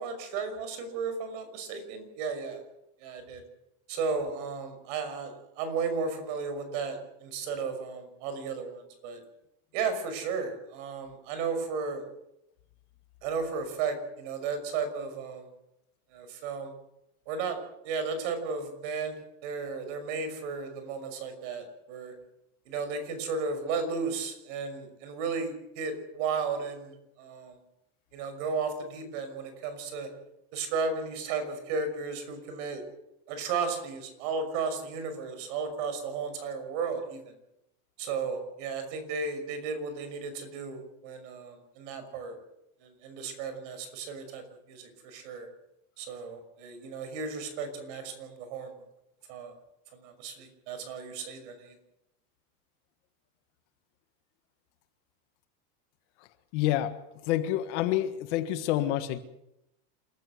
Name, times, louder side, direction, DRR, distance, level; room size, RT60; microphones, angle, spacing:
voice 1, 0.0-2.6 3.0-3.4 3.9-9.2 9.7-12.1 13.2-15.5 16.1-16.7 17.3-17.6 17.8-22.1 22.7-27.6 28.1-30.1 30.5-32.8 33.3-37.2 38.0-42.4 42.8-44.4 44.7-45.5 46.0-48.7 49.3-49.5 49.9-51.8, right 5 dB, 50° right, 9 dB, 5.9 m, -34 dB
voice 2, 56.5-56.9 57.3-59.2, left 13 dB, 50° left, 10 dB, 1.7 m, -28 dB
27.5 x 15.0 x 8.0 m, 0.85 s
supercardioid pair, 165°, 45 cm